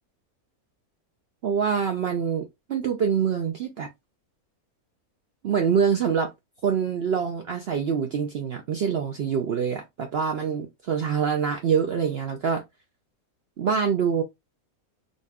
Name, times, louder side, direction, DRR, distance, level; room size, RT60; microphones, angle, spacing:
voice 1, 1.4-3.9 5.4-6.3 6.6-12.6 13.6-14.2, right 7 dB, 70° right, 0.6 m, -25 dB
4.0 x 2.5 x 2.3 m
omnidirectional pair, 1.5 m